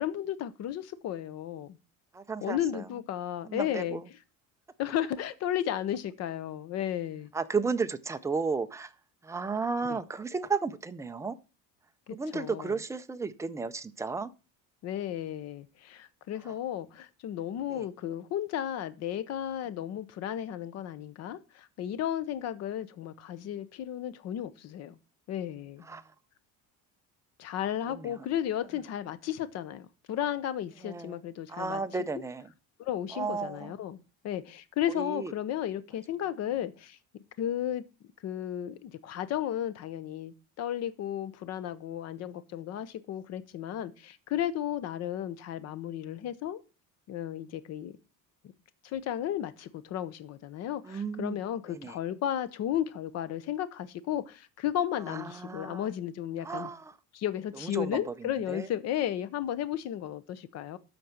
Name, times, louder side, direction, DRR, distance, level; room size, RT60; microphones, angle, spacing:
voice 1, 0.0-1.8 2.4-4.0 4.8-7.3 9.9-10.0 12.1-12.8 14.8-24.9 25.3-25.9 27.4-31.8 32.8-37.8 38.2-46.6 47.1-48.0 48.8-56.7 57.1-60.8, left 11 dB, 45° left, 0.9 m, -34 dB
voice 2, 2.1-2.8 3.5-4.0 7.3-8.9 9.2-11.4 12.1-14.3 17.7-17.9 25.9-26.0 28.0-28.1 30.8-31.2 31.5-32.5 33.1-33.7 34.9-35.3 50.9-51.4 51.7-52.0 55.1-55.9 56.4-56.9 57.6-58.1 58.5-58.7, right 4 dB, 10° right, 0.4 m, -33 dB
12.5 x 4.4 x 6.5 m
cardioid pair, 170°, 36 cm